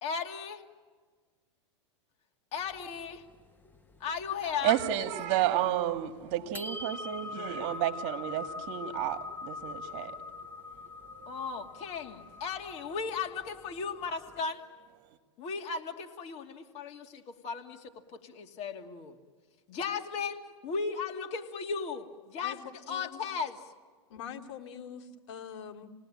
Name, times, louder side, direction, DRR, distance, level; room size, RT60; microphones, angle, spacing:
voice 1, 0.0-0.6 2.5-3.2 4.0-4.8 5.3-5.4 11.3-14.6 15.4-19.2 19.7-22.6 22.9-23.6, left 5 dB, 45° left, 2.7 m, -36 dB
sound 1, 2.6-4.6 4.9-5.0 5.4-6.0 6.3-14.4, left 4 dB, 10° left, 1.4 m, -43 dB
voice 2, 4.4-10.6 11.2-11.3, right 12 dB, 50° right, 2.4 m, -31 dB
voice 3, 22.9-23.2 24.1-25.9, left 8 dB, 65° left, 2.6 m, -44 dB
28.5 x 19.5 x 9.0 m
hypercardioid pair, 115°, 16 cm